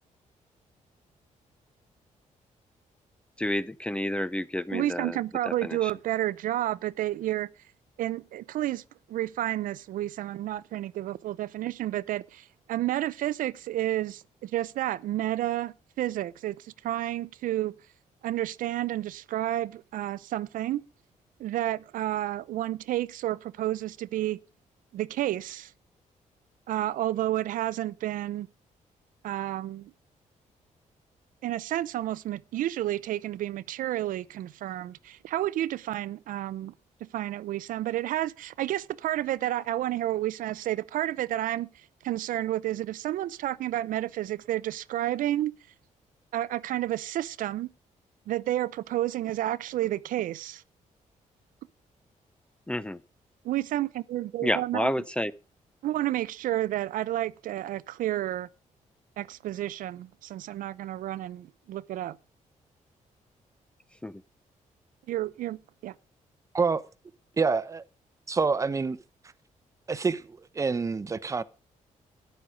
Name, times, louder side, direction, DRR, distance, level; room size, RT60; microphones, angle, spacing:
voice 1, 3.4-5.2 5.6-5.8 52.7-53.0 54.4-55.3 64.0-64.1, left 1 dB, 10° left, 0.5 m, -29 dB
voice 2, 4.7-7.5 8.0-17.8 18.2-20.8 21.4-24.4 24.9-25.7 26.7-28.5 29.2-29.9 31.4-36.7 37.0-45.5 46.3-47.7 48.3-50.6 53.4-54.9 55.8-58.5 59.2-62.2 65.1-65.9, right 14 dB, 85° right, 0.5 m, -31 dB
voice 3, 66.5-66.9 67.4-67.8 68.3-69.0 69.9-71.4, right 4 dB, 25° right, 0.8 m, -27 dB
13.0 x 9.4 x 5.0 m
cardioid pair, 140°, 13 cm